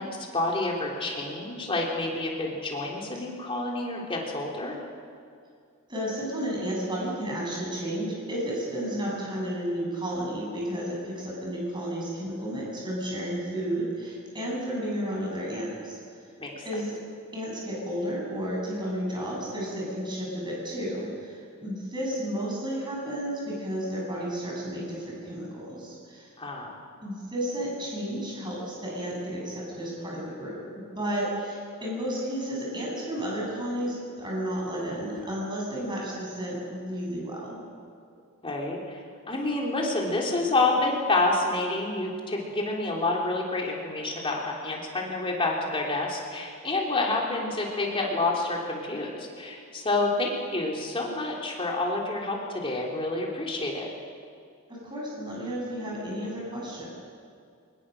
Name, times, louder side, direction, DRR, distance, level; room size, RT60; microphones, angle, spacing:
voice 1, 0.0-4.8 16.4-16.6 26.4-26.8 38.4-39.0 39.3-53.9, left 2 dB, 25° left, -2 dB, 3.3 m, -28 dB
voice 2, 5.9-16.0 16.6-16.9 17.3-26.3 27.0-37.6 54.7-56.9, equal, 20° right, -3 dB, 7.3 m, -32 dB
23.0 x 20.5 x 6.5 m, 2.3 s
head